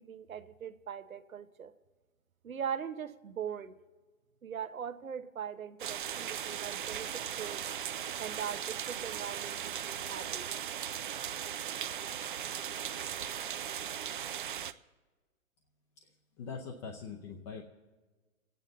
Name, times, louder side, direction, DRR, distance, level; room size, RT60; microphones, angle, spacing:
voice 1, 0.0-1.7 2.4-3.8 4.4-7.6 8.2-10.4, right 8 dB, 85° right, 10 dB, 1.0 m, -41 dB
sound 1, 5.8-14.7, right 9 dB, 40° right, 0.4 m, -38 dB
voice 2, 16.4-17.6, left 5 dB, 20° left, 1 dB, 0.7 m, -42 dB
27.0 x 9.2 x 3.9 m, 1.3 s
hypercardioid pair, 140°, 40 cm